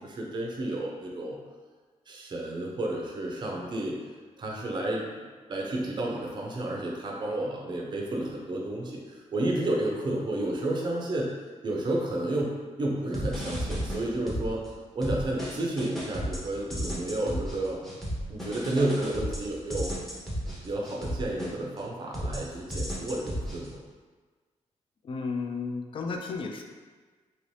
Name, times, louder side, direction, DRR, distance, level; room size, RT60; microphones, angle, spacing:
voice 1, 0.0-1.4 2.1-4.0 4.4-5.1 5.5-11.3 11.6-14.6 14.9-17.8 18.3-19.9 20.6-23.7, right 1 dB, 40° right, -2 dB, 0.5 m, -31 dB
sound 1, 13.1-14.7 15.0-21.8 22.1-23.7, equal, ahead, 0.7 m, -34 dB
voice 2, 25.0-26.6, left 4 dB, 45° left, 3 dB, 0.3 m, -33 dB
2.9 x 2.7 x 3.1 m, 1.4 s
wide cardioid pair, 135°, 12 cm